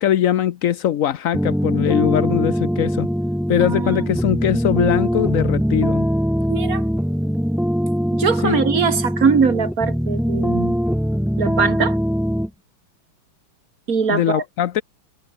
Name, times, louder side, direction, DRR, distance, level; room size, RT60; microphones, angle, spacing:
voice 1, 0.0-3.1 3.5-6.1 8.4-8.6 14.1-14.8, left 11 dB, 85° left, 0.7 m, -21 dB
sound 1, 1.3-12.5, equal, ahead, 3.8 m, -22 dB
voice 2, 3.6-4.1 6.5-6.8 8.1-10.8 11.4-12.0 13.9-14.4, right 5 dB, 40° right, 2.2 m, -21 dB
omnidirectional pair, 2.4 m